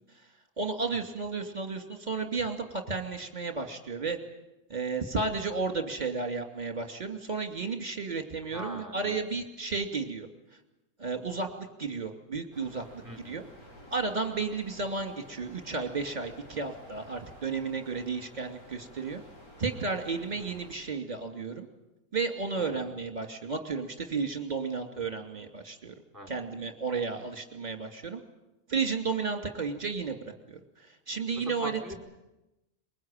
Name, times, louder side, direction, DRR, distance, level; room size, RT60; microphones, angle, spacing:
voice 1, 0.6-4.2 4.7-10.3 11.0-12.8 13.2-13.4 13.9-19.2 19.6-21.7 22.1-25.9 26.3-28.2 28.7-30.2 30.5-31.7, right 4 dB, 30° right, 4 dB, 2.7 m, -33 dB
voice 2, 8.5-9.2 13.0-13.4 20.4-20.5 22.6-22.9 26.1-26.4 31.3-31.9, equal, 10° right, 3 dB, 4.1 m, -42 dB
sound 1, 12.5-20.7, equal, 75° left, 7.0 m, -52 dB
23.0 x 21.5 x 9.0 m, 0.98 s
omnidirectional pair, 1.5 m